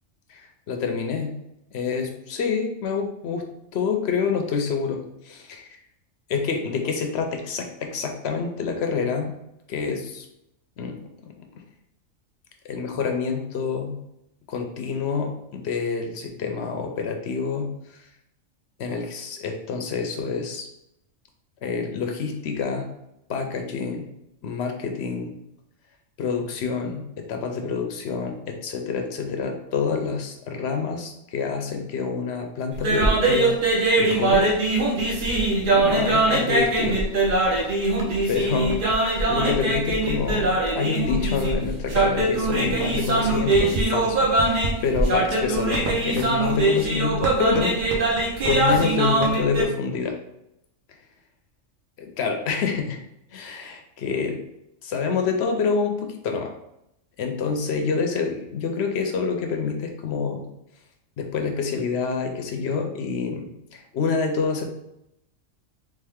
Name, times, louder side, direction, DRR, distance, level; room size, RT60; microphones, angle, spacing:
voice 1, 0.3-1.3 1.7-3.5 3.7-5.7 6.3-9.3 9.7-10.3 10.8-11.5 12.6-14.0 14.5-17.7 18.8-20.7 21.6-22.9 23.3-24.1 24.4-25.3 26.2-33.6 34.0-34.5 35.6-37.0 37.5-37.8 38.3-38.8 39.3-47.8 48.4-50.2 52.0-53.0 53.3-54.4 54.8-56.5 57.2-60.5 61.2-63.5 63.7-64.6, left 5 dB, 65° left, 4 dB, 0.8 m, -27 dB
sound 1, 32.7-49.6, right 2 dB, 50° right, 0.7 m, -22 dB
3.4 x 3.3 x 3.5 m, 0.83 s
omnidirectional pair, 1.4 m